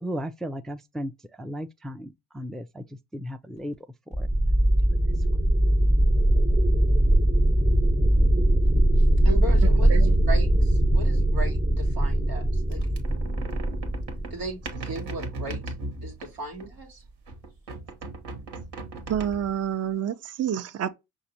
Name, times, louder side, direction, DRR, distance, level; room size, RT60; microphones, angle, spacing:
voice 1, 0.0-1.1 1.4-2.8 3.1-3.7 4.2-4.3, equal, ahead, 0.4 m, -35 dB
sound 1, 4.1-14.7, right 1 dB, 15° right, 1.0 m, -21 dB
voice 2, 9.0-10.0 10.3-12.8 13.7-13.8 14.3-15.6 16.0-17.0, right 1 dB, 90° right, 1.5 m, -36 dB
sound 2, 12.7-16.9 17.3-19.7, right 2 dB, 70° right, 1.5 m, -37 dB
voice 3, 19.1-20.9, right 9 dB, 35° right, 0.6 m, -28 dB
5.7 x 2.7 x 2.9 m
hypercardioid pair, 50°, 44 cm